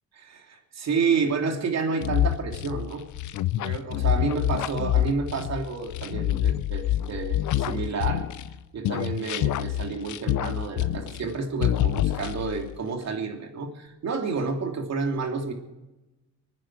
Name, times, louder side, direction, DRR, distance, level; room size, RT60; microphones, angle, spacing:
voice 1, 0.2-3.0 3.6-8.2 8.7-15.5, right 4 dB, 60° right, 3 dB, 3.1 m, -29 dB
sound 1, 2.0-8.6 8.8-11.3 11.6-12.7, left 12 dB, 75° left, 0.7 m, -26 dB
25.5 x 9.7 x 4.8 m, 1.0 s
cardioid pair, 90°, 30 cm